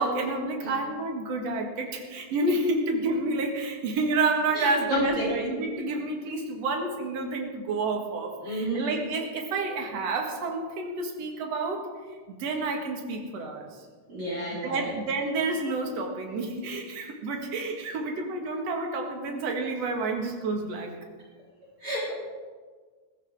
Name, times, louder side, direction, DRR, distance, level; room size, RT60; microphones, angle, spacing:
voice 1, 0.0-11.8 12.4-13.7 14.6-21.0, right 3 dB, 60° right, 2 dB, 2.8 m, -29 dB
voice 2, 4.5-5.4 8.4-8.9 14.1-14.9 21.8-22.1, equal, 40° right, -6 dB, 4.0 m, -30 dB
18.5 x 15.5 x 3.7 m, 1.5 s
omnidirectional pair, 3.5 m